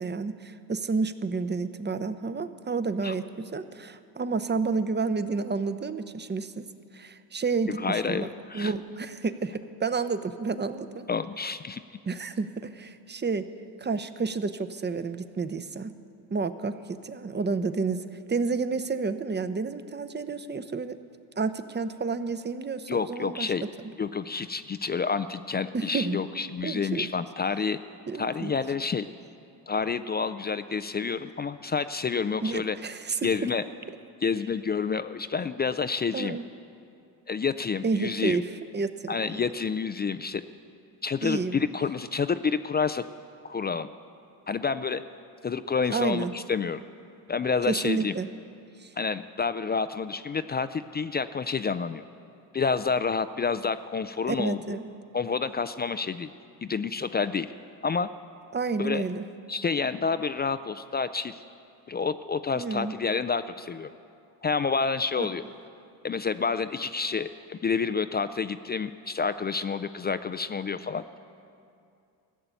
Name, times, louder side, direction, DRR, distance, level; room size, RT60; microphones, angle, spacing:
voice 1, 0.0-6.6 6.9-8.3 8.5-11.0 12.1-13.4 13.8-15.9 16.3-18.0 18.3-21.0 21.4-23.5 25.7-26.2 26.6-27.1 28.1-28.5 32.4-33.2 36.1-36.4 37.8-38.4 38.7-39.4 41.2-41.6 45.9-46.3 47.7-48.3 48.8-48.9 54.3-54.9 58.5-59.2 62.5-63.0 65.2-65.3, right 4 dB, 25° right, 12 dB, 0.7 m, -30 dB
voice 2, 7.7-8.7 11.1-11.8 22.9-23.6 24.0-27.8 28.2-29.1 29.7-32.8 33.2-33.6 34.2-36.4 37.3-38.4 39.1-40.4 41.0-43.0 43.4-43.9 44.5-45.0 45.4-46.8 47.3-48.1 49.0-52.0 52.5-54.8 55.1-56.3 56.6-57.5 57.8-58.1 58.8-59.0 59.5-61.4 61.9-63.9 64.4-65.4 66.0-71.0, left 5 dB, 25° left, 11 dB, 0.3 m, -29 dB
15.0 x 6.9 x 8.9 m, 2.5 s
supercardioid pair, 65°, 45 cm